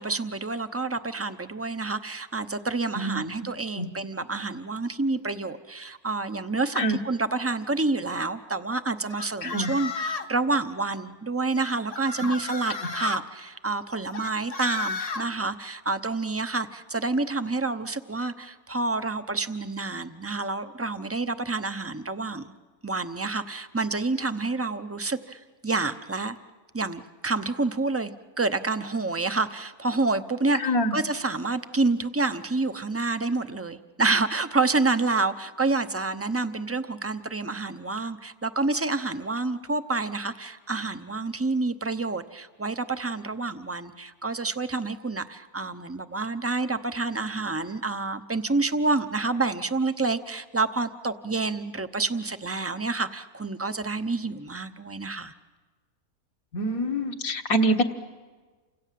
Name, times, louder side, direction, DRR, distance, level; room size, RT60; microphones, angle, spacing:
voice 1, 0.0-22.5 22.8-26.4 26.7-28.1 28.4-55.3, right 3 dB, 15° right, 10 dB, 0.6 m, -28 dB
sound 1, 9.1-10.4 11.6-13.2 14.1-15.2, left 4 dB, 30° left, 1.0 m, -33 dB
voice 2, 30.6-30.9 56.5-57.8, equal, 70° left, 2 dB, 1.9 m, -25 dB
29.0 x 26.5 x 7.6 m, 1.4 s
omnidirectional pair, 1.6 m